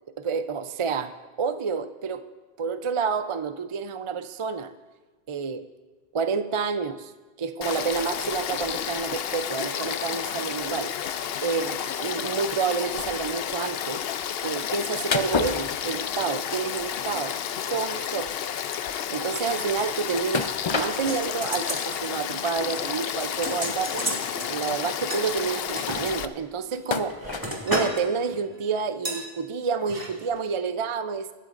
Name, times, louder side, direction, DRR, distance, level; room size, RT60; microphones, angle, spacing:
voice 1, 0.2-2.3 2.6-4.7 5.3-5.6 6.1-7.1 7.4-10.9 11.4-14.0 14.4-17.4 17.7-18.3 18.9-24.1 24.5-27.2 27.7-31.3, right 5 dB, 45° right, 10 dB, 0.4 m, -29 dB
Frog / Stream, 7.6-26.3, left 9 dB, 70° left, 0.8 m, -31 dB
sound 1, 15.1-16.4 16.7-17.0 17.3-17.4 17.9-18.0 18.2-18.4 20.3-21.4 22.0-22.1 23.3-23.4 24.3-24.4 24.6-24.9 26.9-27.6, left 5 dB, 35° left, 0.5 m, -29 dB
sound 2, 20.4-21.9 22.2-22.5 22.8-24.5 25.1-26.0 26.7-28.0 28.3-28.5 29.1-29.2 29.8-30.1 30.4-30.5, right 1 dB, 20° right, 2.4 m, -32 dB
24.0 x 13.0 x 2.5 m, 1.3 s
omnidirectional pair, 1.1 m